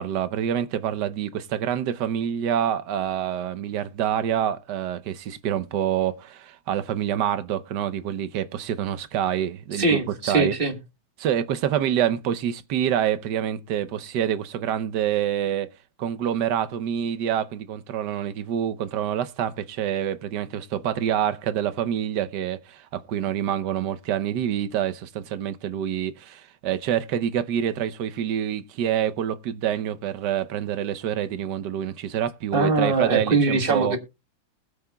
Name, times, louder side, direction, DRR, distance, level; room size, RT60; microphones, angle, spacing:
voice 1, 0.0-10.0 10.3-10.5 11.2-15.7 16.0-34.0, right 10 dB, 65° right, 1.3 m, -26 dB
voice 2, 9.7-10.8 32.5-34.0, right 3 dB, 30° right, 1.4 m, -22 dB
20.5 x 8.7 x 2.3 m
omnidirectional pair, 2.1 m